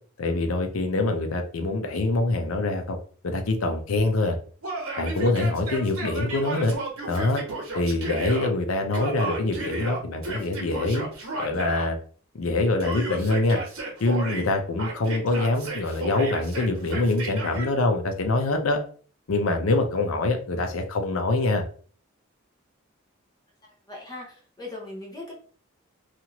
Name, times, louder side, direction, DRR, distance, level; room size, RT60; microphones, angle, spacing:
voice 1, 0.2-3.0 3.2-4.3 5.0-6.7 7.1-7.4 7.7-11.1 11.4-12.0 12.3-13.6 14.0-18.8 19.3-21.6, left 2 dB, 85° left, 5 dB, 0.6 m, -24 dB
Yell, 4.6-8.5 8.9-11.9 12.8-14.5 14.8-17.7, right 2 dB, 90° right, 1.0 m, -33 dB
voice 2, 23.9-25.3, left 2 dB, 20° left, -3 dB, 0.7 m, -39 dB
2.9 x 2.4 x 2.8 m, 0.42 s
head